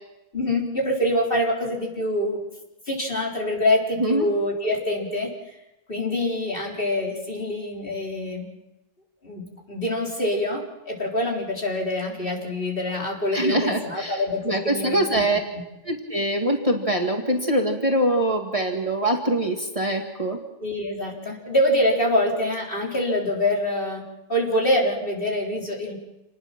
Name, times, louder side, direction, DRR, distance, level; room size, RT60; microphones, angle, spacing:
voice 1, 0.3-2.4 2.9-5.3 5.9-8.5 9.2-15.2 20.6-24.0 24.3-26.0, left 1 dB, 45° left, -2 dB, 4.4 m, -25 dB
voice 2, 4.0-4.3 13.3-14.2 14.5-15.4 15.8-20.4, right 1 dB, 25° right, 2 dB, 2.1 m, -23 dB
28.0 x 20.0 x 6.0 m, 0.97 s
omnidirectional pair, 1.3 m